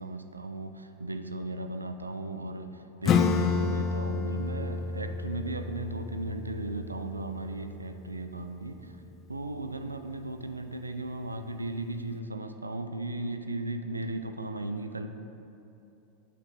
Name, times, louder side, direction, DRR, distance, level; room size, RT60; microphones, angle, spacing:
voice 1, 0.0-9.0 9.3-15.1, right 2 dB, 85° right, 8 dB, 0.4 m, -36 dB
Acoustic guitar / Strum, 3.0-8.3, left 5 dB, 35° left, 0.4 m, -30 dB
8.5 x 5.7 x 3.4 m, 2.9 s
figure-of-eight pair, 85°, 0 cm